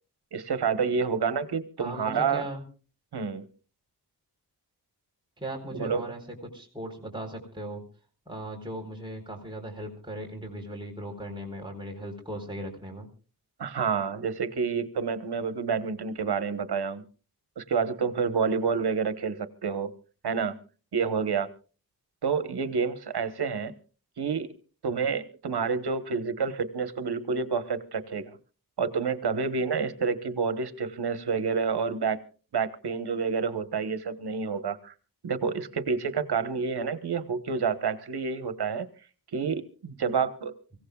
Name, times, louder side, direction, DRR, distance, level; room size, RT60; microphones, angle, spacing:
voice 1, 0.3-2.5 3.1-3.4 5.7-6.1 13.6-17.0 17.6-19.9 20.2-20.6 20.9-21.5 22.2-23.7 24.2-24.5 24.8-28.3 28.8-32.2 32.5-34.9 35.2-38.9 39.3-40.5, right 5 dB, 80° right, 12 dB, 1.3 m, -28 dB
voice 2, 1.8-2.6 5.4-7.8 8.3-13.1, right 1 dB, 10° right, 0 dB, 4.2 m, -38 dB
25.0 x 16.5 x 2.4 m, 0.37 s
wide cardioid pair, 75°, 39 cm